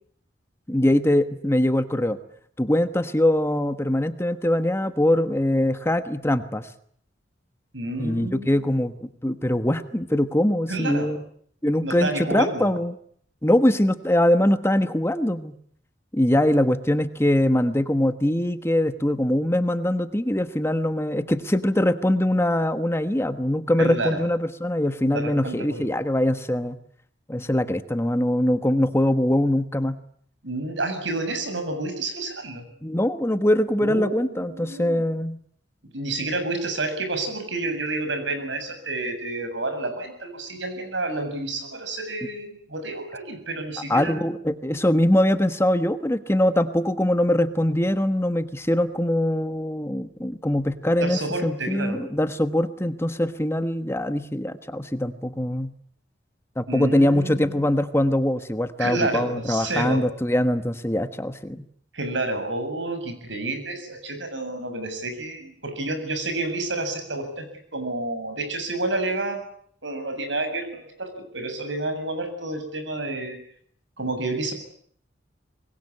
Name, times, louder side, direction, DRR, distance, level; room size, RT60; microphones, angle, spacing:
voice 1, 0.7-2.2 2.6-6.7 8.0-8.9 9.2-11.2 11.6-13.0 13.4-15.5 16.1-26.8 27.3-30.0 32.8-35.4 43.9-55.7 56.6-61.6, left 1 dB, 15° left, 10 dB, 1.2 m, -22 dB
voice 2, 7.7-8.7 10.7-11.1 11.8-12.7 23.8-24.2 25.1-25.9 30.4-32.7 33.8-35.0 35.9-44.4 51.0-52.0 56.7-57.7 58.8-60.0 61.9-69.4 69.8-73.4 74.0-74.5, right 2 dB, 75° right, 8 dB, 7.4 m, -30 dB
25.0 x 21.5 x 9.7 m, 0.63 s
head